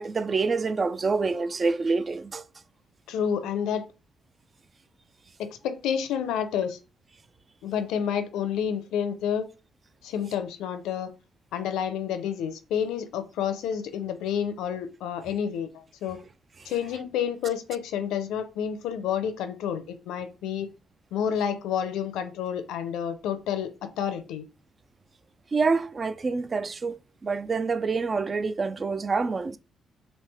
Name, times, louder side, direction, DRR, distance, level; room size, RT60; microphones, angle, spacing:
voice 1, 0.0-2.4 25.5-29.6, right 4 dB, 35° right, 0.3 m, -27 dB
voice 2, 3.1-3.9 5.4-6.8 7.6-9.5 10.0-11.1 11.5-16.2 16.7-20.7 21.1-24.5, left 8 dB, 90° left, 0.5 m, -29 dB
3.1 x 2.7 x 3.4 m
cardioid pair, 90°, 0 cm